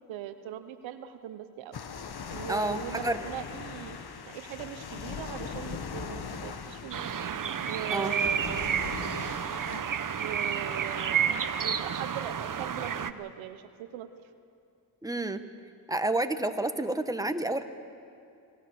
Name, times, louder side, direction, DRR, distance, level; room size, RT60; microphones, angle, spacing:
voice 1, 0.1-1.8 2.3-4.0 4.2-7.2 7.6-9.2 10.2-14.1, right 11 dB, 85° right, 11 dB, 1.0 m, -40 dB
sound 1, 1.7-9.8, left 6 dB, 55° left, 1.7 m, -40 dB
voice 2, 2.5-3.2 7.9-8.1 15.0-15.4 15.9-17.6, right 2 dB, 10° right, 9 dB, 1.5 m, -29 dB
sound 2, 6.9-13.1, right 7 dB, 45° right, 1.0 m, -30 dB
27.0 x 16.0 x 6.9 m, 2.4 s
supercardioid pair, 45°, 45 cm